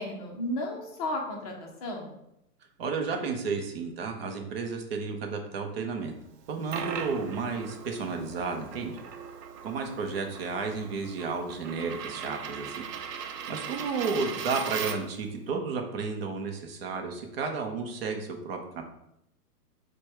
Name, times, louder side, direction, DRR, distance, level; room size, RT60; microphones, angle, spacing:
voice 1, 0.0-2.1, left 1 dB, 25° left, 0 dB, 0.6 m, -34 dB
voice 2, 2.8-6.1 6.5-8.9 9.6-12.9 13.5-18.8, right 4 dB, 40° right, 3 dB, 0.6 m, -32 dB
Coin (dropping), 6.4-15.2, right 7 dB, 80° right, 0.6 m, -39 dB
4.5 x 2.2 x 4.5 m, 0.80 s
hypercardioid pair, 155°, 47 cm